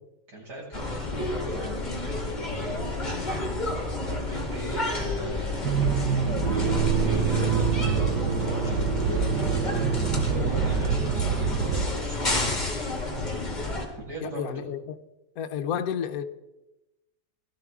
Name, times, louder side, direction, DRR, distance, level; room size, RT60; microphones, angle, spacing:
voice 1, 0.3-2.7 3.6-5.7 6.5-12.7 14.0-14.4, right 1 dB, 70° right, -5 dB, 6.5 m, -39 dB
sound 1, 0.7-13.9, left 2 dB, 25° left, 2.2 m, -30 dB
Accelerating revving vroom, 5.6-11.9, right 7 dB, 85° right, 1.5 m, -26 dB
voice 2, 14.2-14.9 15.4-16.2, left 8 dB, 65° left, 8 dB, 1.1 m, -31 dB
17.0 x 13.0 x 3.6 m, 1.0 s
omnidirectional pair, 1.8 m